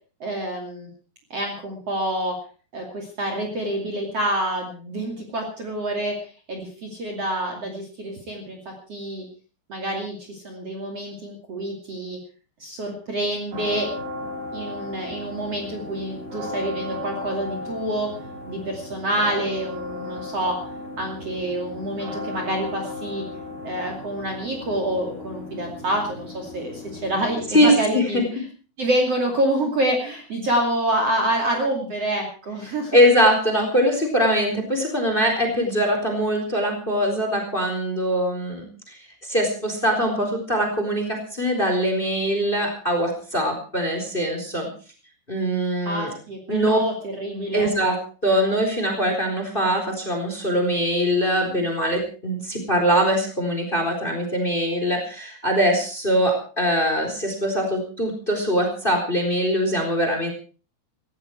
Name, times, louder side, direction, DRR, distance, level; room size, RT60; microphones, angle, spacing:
voice 1, 0.2-0.9 1.3-2.4 2.7-9.2 9.7-12.2 12.6-13.9 14.5-18.1 18.5-20.6 21.0-23.2 23.6-28.2 28.8-33.0 45.8-47.7, right 1 dB, 40° right, 2 dB, 3.3 m, -27 dB
sound 1, 13.5-27.6, left 2 dB, 60° right, 8.9 m, -35 dB
voice 2, 27.5-28.2 32.9-44.7 45.3-46.1 46.5-46.8 47.5-48.0 48.2-60.3, equal, 10° left, 4 dB, 3.8 m, -22 dB
18.0 x 15.5 x 4.6 m, 0.37 s
omnidirectional pair, 4.9 m